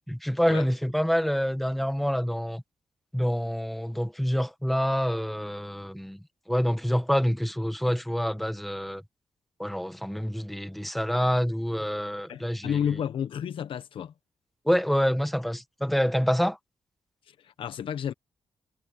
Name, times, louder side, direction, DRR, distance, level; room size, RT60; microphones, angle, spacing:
voice 1, 0.0-2.6 3.1-6.2 6.5-9.0 9.6-12.8 14.6-16.6, equal, ahead, 1.7 m, -27 dB
voice 2, 12.3-14.1 17.3-18.1, left 8 dB, 80° left, 1.0 m, -31 dB
wide cardioid pair, 170°, 9 cm